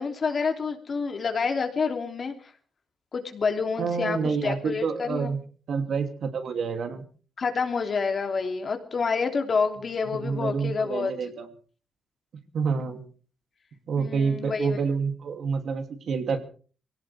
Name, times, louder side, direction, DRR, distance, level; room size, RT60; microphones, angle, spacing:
voice 1, 0.0-2.3 3.1-5.3 7.4-11.1 14.0-14.8, left 5 dB, 45° left, 4 dB, 3.0 m, -28 dB
voice 2, 3.8-5.4 5.7-7.0 10.1-11.5 12.5-13.0 13.9-16.4, right 5 dB, 65° right, 5 dB, 2.7 m, -28 dB
24.0 x 17.5 x 3.5 m, 0.41 s
cardioid pair, 105°, 0 cm